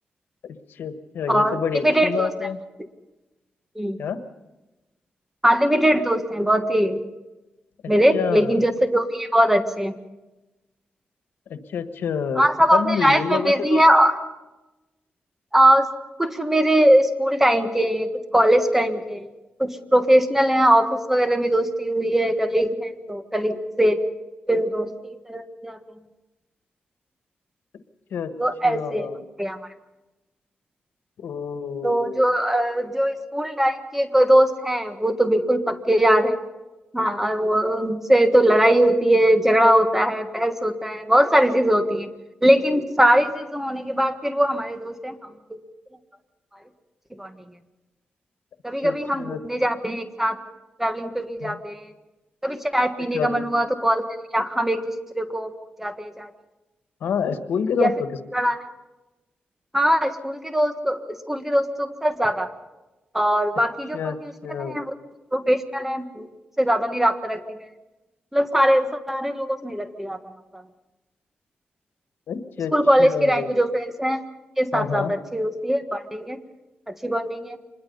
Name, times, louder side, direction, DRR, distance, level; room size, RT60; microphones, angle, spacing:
voice 1, 0.4-2.6 4.0-4.2 7.8-8.6 11.5-13.8 28.1-28.3 28.6-29.2 31.2-32.3 48.8-49.4 51.4-51.6 53.1-53.4 57.0-58.1 63.9-64.8 72.3-72.7 73.0-73.5 74.7-75.1, left 7 dB, 90° left, 9 dB, 1.4 m, -28 dB
voice 2, 1.8-2.3 3.7-4.0 5.4-7.0 7.9-10.0 12.4-14.2 15.5-15.9 16.2-19.3 19.6-24.0 24.5-25.8 28.4-29.1 29.4-29.6 31.8-36.4 36.9-42.1 42.4-45.1 47.2-47.3 48.6-50.4 50.8-51.9 52.4-54.1 54.3-55.5 55.8-56.3 57.8-57.9 58.3-58.6 59.7-62.5 63.1-64.1 64.6-64.9 65.3-66.3 66.6-67.7 68.3-70.6 72.7-74.2 74.6-76.4 77.0-77.6, equal, 10° right, 8 dB, 1.6 m, -21 dB
25.5 x 21.0 x 5.5 m, 1.1 s
cardioid pair, 85°, 4 cm